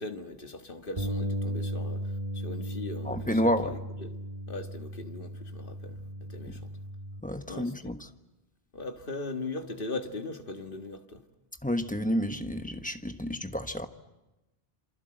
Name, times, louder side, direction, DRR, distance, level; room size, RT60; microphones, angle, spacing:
voice 1, 0.0-2.0 2.3-6.0 6.3-6.7 7.5-7.7 8.7-11.2, left 3 dB, 55° left, 1.9 m, -39 dB
Bass guitar, 1.0-7.2, equal, 45° right, 2.3 m, -36 dB
voice 2, 3.0-3.8 7.2-8.1 11.6-13.9, equal, 10° left, 1.2 m, -30 dB
27.0 x 26.0 x 7.9 m
omnidirectional pair, 1.1 m